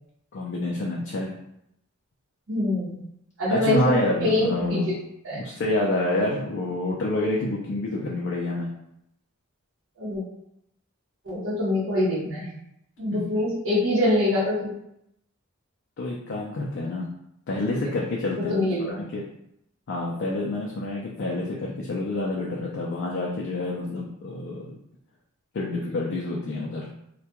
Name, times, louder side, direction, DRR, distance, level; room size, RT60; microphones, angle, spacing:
voice 1, 0.3-1.3 3.5-4.9 5.3-8.7 13.1-13.2 16.0-17.0 17.5-19.2 19.9-24.7 25.5-26.9, left 2 dB, 55° left, -2 dB, 0.4 m, -28 dB
voice 2, 2.5-2.9 3.4-4.9 5.2-5.4 10.0-10.2 11.2-12.4 13.0-14.7 18.5-18.9, left 1 dB, 65° right, -9 dB, 0.8 m, -24 dB
2.2 x 2.2 x 2.8 m, 0.78 s
head